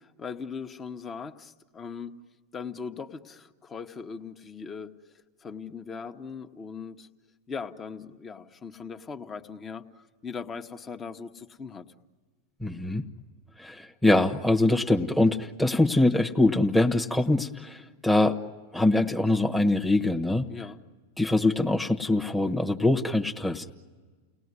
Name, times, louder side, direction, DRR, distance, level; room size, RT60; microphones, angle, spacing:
voice 1, 0.0-2.2 2.5-5.1 5.4-7.1 7.5-11.8 20.5-20.8, left 5 dB, 25° left, 7 dB, 1.4 m, -39 dB
voice 2, 12.6-13.0 13.6-18.4 18.7-20.5 21.2-23.7, left 2 dB, 5° left, 4 dB, 1.3 m, -23 dB
30.0 x 18.5 x 9.8 m, 1.4 s
hypercardioid pair, 100°, 0 cm